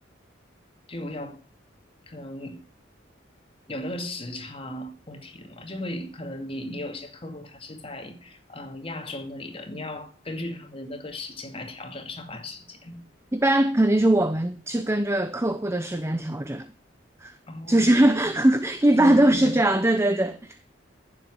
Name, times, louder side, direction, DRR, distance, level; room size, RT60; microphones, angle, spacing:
voice 1, 0.9-1.4 2.1-2.6 3.7-13.0 17.5-18.4 18.9-19.9, left 1 dB, 30° left, 2.3 m, -36 dB
voice 2, 13.3-16.7 17.2-17.4 17.7-20.6, right 1 dB, 15° right, 0.7 m, -21 dB
15.5 x 7.4 x 6.4 m
head